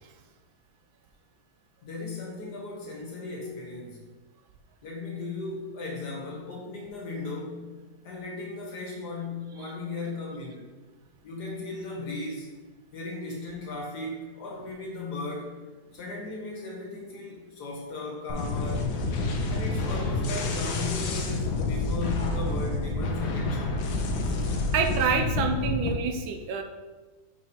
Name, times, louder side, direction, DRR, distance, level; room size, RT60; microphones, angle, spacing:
voice 1, 1.8-4.1 4.8-10.7 11.2-12.5 12.9-15.6 15.9-18.9 19.5-23.8, left 3 dB, 60° left, -3 dB, 1.7 m, -36 dB
sound 1, 18.3-25.9, left 2 dB, 80° left, 1.4 m, -28 dB
voice 2, 24.7-26.6, right 5 dB, 85° right, 5 dB, 1.4 m, -27 dB
6.5 x 5.0 x 2.9 m, 1.3 s
omnidirectional pair, 2.1 m